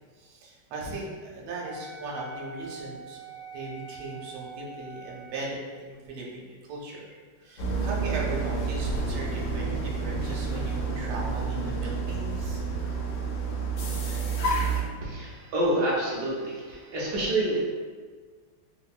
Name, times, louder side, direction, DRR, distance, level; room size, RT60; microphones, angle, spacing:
voice 1, 0.2-7.1 7.4-12.9, right 3 dB, 90° right, -3 dB, 1.4 m, -38 dB
Wind instrument woodwind instrument, 1.6-5.5, right 2 dB, 30° left, 0.7 m, -43 dB
sound 1, 7.6-14.8, right 4 dB, 75° left, 1.2 m, -29 dB
voice 2, 15.0-17.6, right 1 dB, 70° right, -6 dB, 1.0 m, -27 dB
3.5 x 2.1 x 2.4 m, 1.5 s
omnidirectional pair, 2.3 m